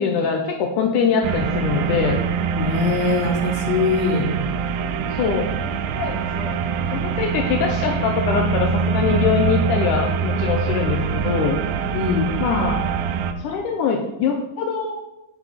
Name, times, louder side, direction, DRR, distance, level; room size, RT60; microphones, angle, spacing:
voice 1, 0.0-2.2 4.3-4.4 5.1-5.5 6.0-6.5 6.9-11.6 12.4-12.9 13.4-15.0, left 6 dB, 75° left, 3 dB, 2.1 m, -23 dB
sound 1, 1.2-13.3, right 6 dB, 80° right, 2.4 m, -24 dB
voice 2, 2.6-4.3 11.9-12.3, left 5 dB, 40° left, 0 dB, 1.6 m, -22 dB
8.9 x 6.2 x 5.6 m, 0.93 s
omnidirectional pair, 4.1 m